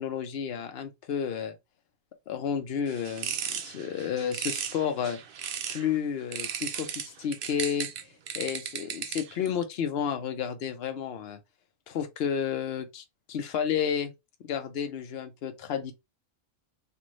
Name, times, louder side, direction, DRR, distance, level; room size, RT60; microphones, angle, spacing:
voice 1, 0.0-1.6 2.3-5.2 5.7-7.9 8.3-11.4 11.9-14.1 14.4-15.9, left 8 dB, 55° left, 0.8 m, -31 dB
sound 1, 2.9-5.9 6.3-9.5, right 8 dB, 60° right, 0.6 m, -36 dB
3.1 x 2.6 x 2.5 m
omnidirectional pair, 1.4 m